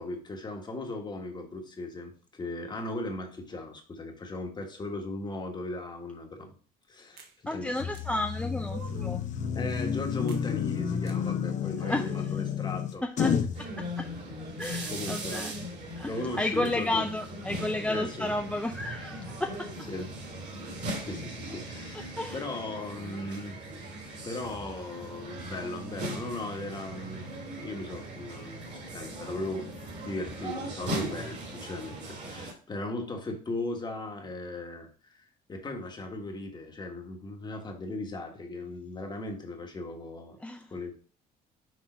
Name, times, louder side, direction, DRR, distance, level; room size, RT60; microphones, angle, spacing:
voice 1, 0.0-6.5 6.9-7.8 9.5-13.0 14.9-15.5 16.0-17.1 17.8-18.3 19.9-20.1 21.0-23.6 24.2-27.3 27.5-40.4 40.7-40.9, left 2 dB, 25° left, 3 dB, 1.4 m, -37 dB
sound 1, 7.2-7.4 7.9-8.1 8.6-9.2 10.3-10.5 11.1-11.2 11.8-12.3, right 7 dB, 70° right, 1.1 m, -46 dB
voice 2, 7.5-9.2 11.8-12.1 13.0-14.1 14.6-15.7 16.0-19.7 21.9-22.5 40.4-40.7, left 1 dB, 5° left, 3 dB, 0.5 m, -32 dB
sound 2, 7.8-13.6, left 7 dB, 45° left, 0.7 m, -30 dB
sound 3, 13.5-32.5, right 1 dB, 45° right, 2.3 m, -39 dB
6.3 x 3.8 x 4.4 m, 0.42 s
cardioid pair, 110°, 17 cm